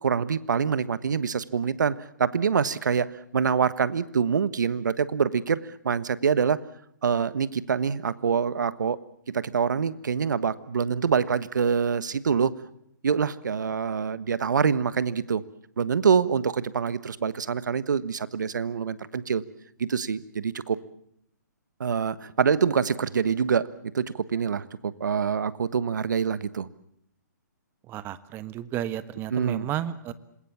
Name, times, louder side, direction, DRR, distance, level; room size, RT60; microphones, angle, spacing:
voice 1, 0.0-6.6 7.0-9.0 9.3-12.5 13.0-15.4 15.8-19.4 19.8-20.8 21.8-23.7 23.9-26.7 29.3-29.7, right 6 dB, 70° right, 15 dB, 1.4 m, -25 dB
voice 2, 27.9-30.1, right 12 dB, 20° right, 14 dB, 1.3 m, -32 dB
27.0 x 21.0 x 7.3 m, 0.73 s
hypercardioid pair, 135°, 10 cm